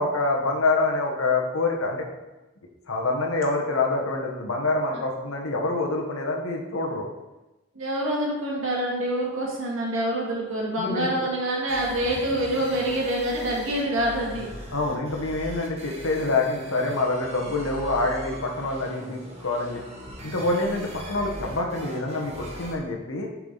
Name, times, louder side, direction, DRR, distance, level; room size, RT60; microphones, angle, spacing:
voice 1, 0.0-2.0 2.9-7.0 10.8-11.1 14.7-19.8 20.2-23.3, left 2 dB, 90° left, 0 dB, 1.2 m, -26 dB
voice 2, 7.8-14.5, right 1 dB, 75° right, -2 dB, 1.8 m, -26 dB
sound 1, 11.7-22.7, equal, 30° right, 1.3 m, -40 dB
7.2 x 4.8 x 3.9 m, 1.0 s
head